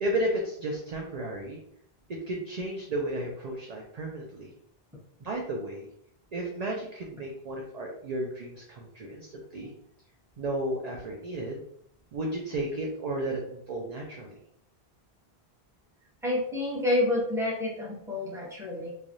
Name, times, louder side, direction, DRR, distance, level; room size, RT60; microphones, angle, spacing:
voice 1, 0.0-1.6 2.1-4.5 5.2-5.9 6.3-9.7 10.4-11.6 12.1-14.3, right 1 dB, 55° right, 0 dB, 0.5 m, -33 dB
voice 2, 16.2-18.9, left 2 dB, 5° right, -6 dB, 1.0 m, -28 dB
3.2 x 2.3 x 2.6 m, 0.71 s
omnidirectional pair, 1.0 m